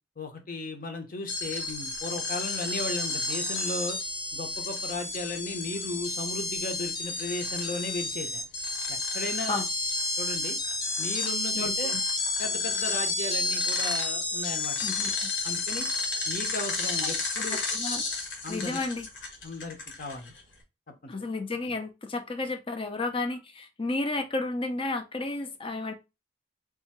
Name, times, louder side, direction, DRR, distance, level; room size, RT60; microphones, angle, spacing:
voice 1, 0.2-4.0 4.3-8.4 8.9-9.6 10.2-10.6 11.0-11.9 12.4-14.8 15.4-15.8 16.3-17.6 18.4-18.8 19.4-20.3 21.0-21.1, left 2 dB, 45° left, 1.0 m, -36 dB
sound 1, 1.3-20.4, left 3 dB, 70° left, 1.4 m, -31 dB
voice 2, 11.5-12.0 14.8-15.3 17.0-18.0 18.5-19.1 21.1-25.9, left 2 dB, 30° left, 0.6 m, -32 dB
3.6 x 2.8 x 4.2 m
head